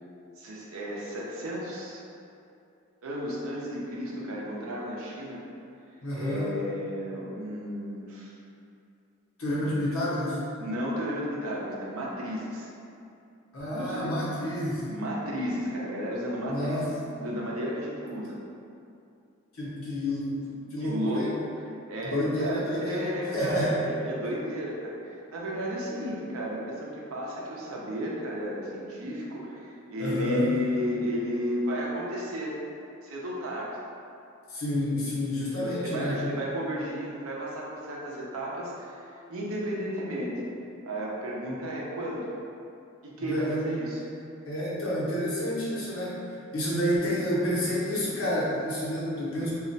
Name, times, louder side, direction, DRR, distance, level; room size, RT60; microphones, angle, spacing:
voice 1, 0.4-2.0 3.0-5.4 6.1-8.3 10.6-12.7 13.7-14.1 14.9-18.4 20.8-21.3 21.9-32.5 33.0-33.7 35.5-40.3 40.8-42.3 43.0-44.0, equal, 85° right, -4 dB, 0.6 m, -33 dB
voice 2, 6.0-6.5 9.4-10.4 13.5-14.9 16.5-16.9 19.5-21.4 22.0-23.8 30.0-30.5 34.5-36.2 41.5-41.6 43.2-43.7 44.5-46.1 46.5-49.5, equal, 85° left, -8 dB, 0.9 m, -29 dB
2.3 x 2.1 x 3.9 m, 2.6 s
head